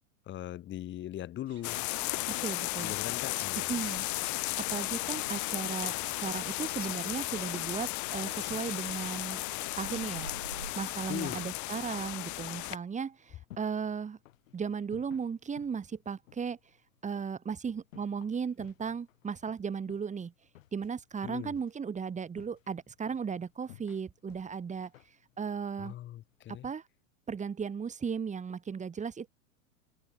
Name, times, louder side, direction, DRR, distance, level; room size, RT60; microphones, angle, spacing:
voice 1, 0.3-1.9 2.8-3.7 11.1-11.4 21.2-21.5 25.8-26.7, left 13 dB, 25° left, 1.1 m, -40 dB
sound 1, 1.5-10.7, right 5 dB, 90° right, 5.4 m, -51 dB
sound 2, 1.6-12.8, left 22 dB, 45° left, 2.5 m, -35 dB
voice 2, 2.4-2.9 3.6-4.1 4.6-9.4 9.8-10.3 10.8-14.2 14.5-16.6 17.0-20.3 20.7-24.9 25.4-25.9 26.6-26.8 27.3-29.3, right 6 dB, 15° right, 1.9 m, -36 dB
sound 3, 13.1-26.5, left 15 dB, 65° left, 4.7 m, -59 dB
hypercardioid pair, 95°, 42 cm